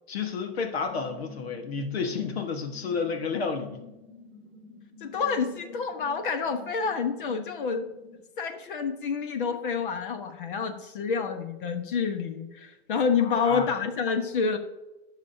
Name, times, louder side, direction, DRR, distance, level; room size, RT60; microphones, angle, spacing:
voice 1, 0.1-3.8 13.2-13.7, left 5 dB, 75° left, 4 dB, 1.5 m, -31 dB
sound 1, 0.8-8.2, left 4 dB, 5° right, 2.0 m, -50 dB
voice 2, 5.0-7.9 8.4-14.6, left 5 dB, 55° left, 7 dB, 1.2 m, -28 dB
18.5 x 6.3 x 2.8 m, 1.0 s
supercardioid pair, 175°, 31 cm